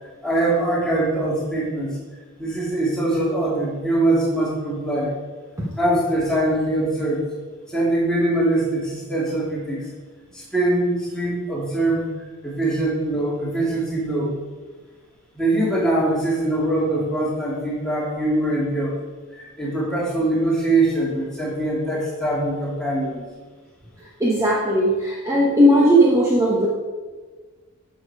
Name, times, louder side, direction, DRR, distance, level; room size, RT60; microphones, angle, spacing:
voice 1, 0.2-2.0 2.4-5.1 5.8-7.3 7.7-9.9 10.3-12.1 12.4-14.4 15.3-18.9 19.3-23.2, right 1 dB, 5° left, -6 dB, 2.5 m, -22 dB
voice 2, 24.0-26.7, equal, 15° right, -5 dB, 1.1 m, -17 dB
10.0 x 6.5 x 4.8 m, 1.4 s
head